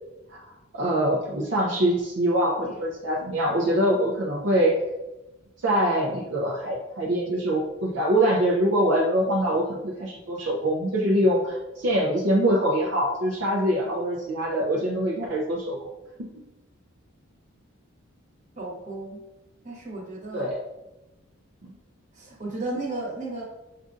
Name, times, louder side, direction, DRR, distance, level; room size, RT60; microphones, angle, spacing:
voice 1, 0.7-4.8 5.6-15.8 20.3-20.6 21.6-21.7, right 1 dB, 60° right, -3 dB, 0.5 m, -24 dB
voice 2, 18.6-19.2 19.6-20.5 22.1-23.4, right 2 dB, 35° right, -2 dB, 1.0 m, -34 dB
6.4 x 2.5 x 2.4 m, 1.0 s
head